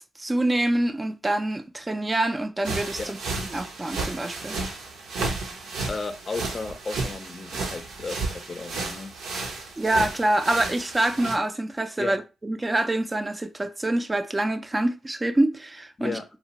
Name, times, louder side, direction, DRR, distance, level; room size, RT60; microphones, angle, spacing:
voice 1, 0.2-3.2 3.5-4.6 9.8-16.2, right 1 dB, 25° right, 0.4 m, -26 dB
sound 1, 2.6-11.4, right 3 dB, 85° right, 0.6 m, -33 dB
voice 2, 5.9-9.1 12.0-12.2 16.0-16.2, left 4 dB, 45° left, 0.5 m, -34 dB
2.8 x 2.1 x 2.8 m
supercardioid pair, 55°, 0 cm